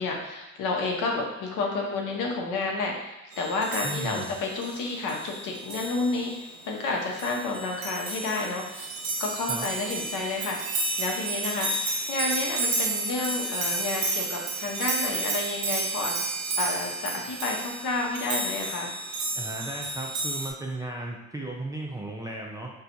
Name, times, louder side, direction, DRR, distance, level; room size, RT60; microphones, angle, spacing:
voice 1, 0.0-8.9 9.2-11.7 12.1-18.9, left 3 dB, 70° left, 1 dB, 0.8 m, -30 dB
sound 1, 3.3-20.5, right 2 dB, 80° right, 0.7 m, -32 dB
voice 2, 3.8-4.3 9.5-9.7 19.3-22.7, right 2 dB, 10° right, -1 dB, 0.3 m, -35 dB
4.3 x 2.3 x 2.6 m, 0.97 s
cardioid pair, 100°, 33 cm